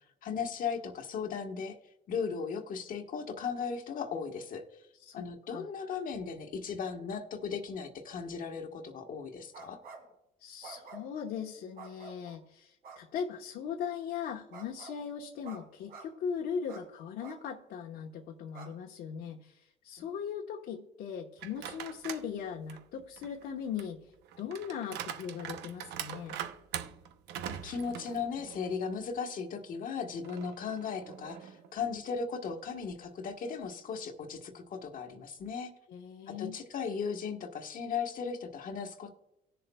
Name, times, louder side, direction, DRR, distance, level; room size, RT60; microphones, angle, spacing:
voice 1, 0.2-1.8 2.1-4.9 5.1-9.8 27.5-35.7 36.3-39.1, left 6 dB, 55° left, 4 dB, 1.3 m, -37 dB
voice 2, 5.0-5.7 10.4-24.1 24.4-26.4 35.9-36.6, left 7 dB, 75° left, -1 dB, 1.1 m, -39 dB
sound 1, 9.5-10.1 10.6-11.2 11.8-12.4 12.8-13.0 14.5-15.0 15.4-15.6 15.9-16.0 16.7-16.8 17.2-17.4 17.9-18.0 18.5-18.7, right 5 dB, 65° right, 3.0 m, -49 dB
sound 2, 21.4-22.3 22.7-28.8 29.2-29.3 30.2-31.7, right 9 dB, 85° right, 0.8 m, -43 dB
18.5 x 6.9 x 2.3 m, 0.88 s
cardioid pair, 110°, 17 cm